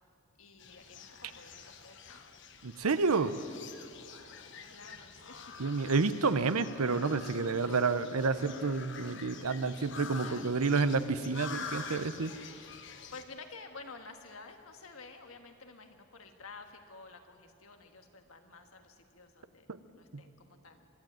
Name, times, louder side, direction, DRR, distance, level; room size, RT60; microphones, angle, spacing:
voice 1, 0.4-2.4 4.1-5.4 6.1-6.2 8.6-8.9 10.1-10.5 13.1-20.9, left 4 dB, 75° left, 5 dB, 1.7 m, -51 dB
sound 1, 0.6-13.2, left 5 dB, 55° left, 1.1 m, -47 dB
voice 2, 2.6-3.4 5.6-12.3 19.7-19.8 20.1-20.3, right 4 dB, 90° right, 13 dB, 0.8 m, -29 dB
24.0 x 12.0 x 9.0 m, 2.6 s
head